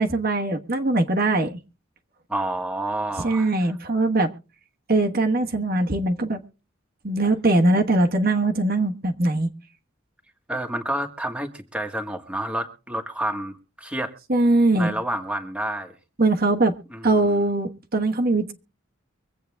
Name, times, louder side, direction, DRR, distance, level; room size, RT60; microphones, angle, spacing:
voice 1, 0.0-1.6 3.2-4.3 4.9-6.4 7.0-9.5 14.3-14.9 16.2-16.7 17.0-18.5, right 2 dB, 50° right, 1.3 m, -21 dB
voice 2, 2.3-3.7 10.5-14.1 14.8-15.9 16.9-17.1, right 1 dB, 5° right, 1.5 m, -29 dB
24.5 x 8.5 x 3.5 m
head